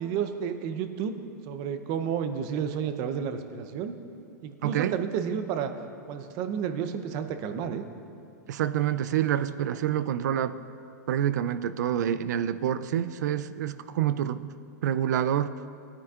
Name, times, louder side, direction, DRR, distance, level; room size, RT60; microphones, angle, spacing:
voice 1, 0.0-3.9 4.4-5.7 6.1-7.8, right 7 dB, 40° right, 9 dB, 0.7 m, -31 dB
voice 2, 4.6-4.9 8.5-10.6 11.1-14.5 14.8-15.5, right 10 dB, 75° right, 14 dB, 0.4 m, -27 dB
17.5 x 9.7 x 2.5 m, 2.6 s
hypercardioid pair, 140°, 9 cm